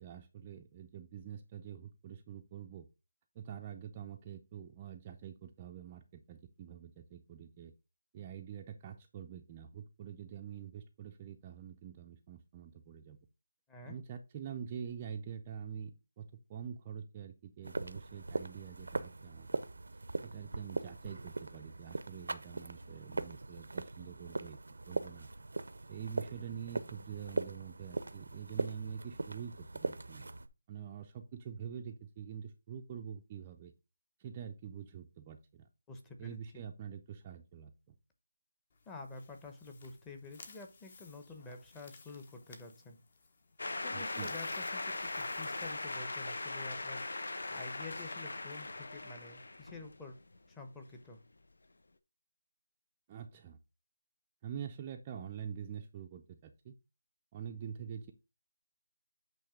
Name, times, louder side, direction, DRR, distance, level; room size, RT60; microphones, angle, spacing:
voice 1, 0.0-2.9 3.3-7.7 8.1-13.2 13.9-19.6 19.9-24.6 24.9-25.3 25.9-30.3 30.7-33.7 34.2-35.7 36.2-37.7 43.9-44.3 53.1-53.6 54.4-56.7 57.3-58.1, right 8 dB, 20° right, 3 dB, 0.5 m, -46 dB
sound 1, 17.6-30.5, right 2 dB, 85° right, 0.7 m, -40 dB
voice 2, 35.9-36.4 38.9-43.0 43.8-50.2 50.5-51.2, left 3 dB, 10° left, 4 dB, 0.8 m, -49 dB
sound 2, 38.7-46.4, left 4 dB, 40° left, 1.0 m, -58 dB
sound 3, 43.6-50.4, left 2 dB, 80° left, 0.8 m, -40 dB
8.6 x 3.1 x 5.0 m, 0.28 s
figure-of-eight pair, 170°, 0 cm